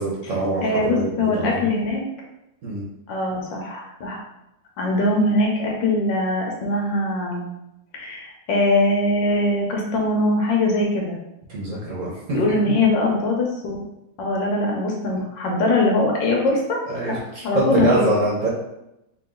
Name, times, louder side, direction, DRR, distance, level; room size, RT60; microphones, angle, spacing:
voice 1, 0.0-1.7 2.6-2.8 11.5-12.4 16.9-18.5, right 2 dB, 50° right, -5 dB, 1.0 m, -24 dB
voice 2, 0.6-2.0 3.1-4.2 4.8-7.5 7.9-11.2 12.3-13.8 14.2-16.8 17.1-17.2 17.4-18.1, left 2 dB, 80° left, -1 dB, 1.5 m, -22 dB
3.4 x 3.0 x 3.7 m, 0.87 s
omnidirectional pair, 2.0 m